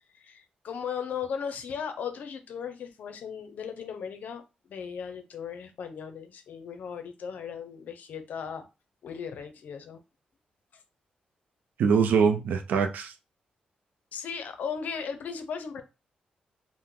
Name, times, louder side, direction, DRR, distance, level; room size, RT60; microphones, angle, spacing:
voice 1, 0.1-8.7 9.0-10.0 14.1-15.8, left 7 dB, 75° left, 0.6 m, -37 dB
voice 2, 11.8-13.1, right 6 dB, 85° right, 0.5 m, -23 dB
2.9 x 2.1 x 3.7 m
cardioid pair, 65°, 3 cm